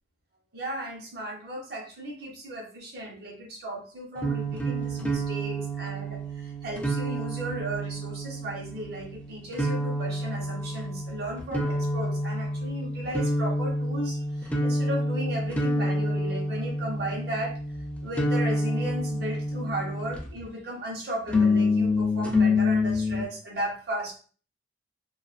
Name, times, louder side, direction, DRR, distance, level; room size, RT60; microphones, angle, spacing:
voice 1, 0.5-17.5 18.0-24.1, right 1 dB, 55° right, -1 dB, 0.9 m, -35 dB
sound 1, 4.2-20.5 21.3-23.2, left 1 dB, 5° left, 0.4 m, -28 dB
2.4 x 2.2 x 2.4 m, 0.40 s
head